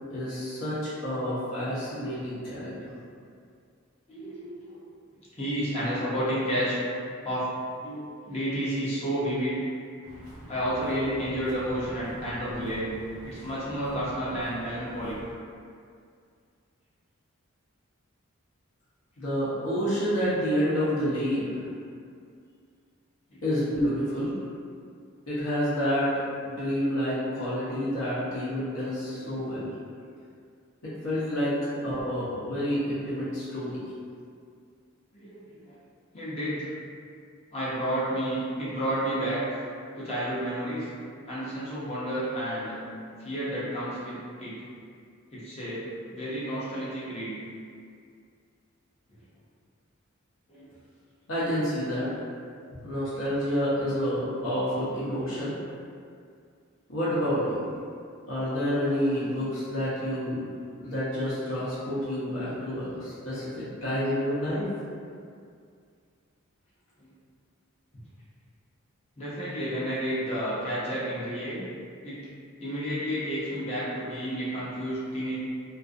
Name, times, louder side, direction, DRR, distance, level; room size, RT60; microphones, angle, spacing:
voice 1, 0.1-2.9 19.2-21.7 23.4-24.3 25.3-26.1 26.4-29.7 30.8-31.6 31.8-33.8 51.3-52.1 52.8-55.5 56.9-57.6 58.3-60.5 60.8-64.6, equal, 65° left, -10 dB, 0.7 m, -29 dB
voice 2, 4.1-4.8 5.3-6.8 7.2-7.5 7.8-9.6 10.4-12.9 13.2-15.1 23.3-23.4 29.4-29.6 29.9-30.0 35.1-35.7 36.1-36.7 37.5-39.6 39.9-40.9 41.3-42.8 43.2-44.6 45.3-45.8 46.1-47.3 50.5-50.7 67.0-67.1 69.2-71.6 72.0-72.2 72.6-75.3, equal, 30° left, -9 dB, 0.6 m, -31 dB
sound 1, 10.0-15.3, equal, 70° right, 0.7 m, -46 dB
2.4 x 2.4 x 2.5 m, 2.2 s
head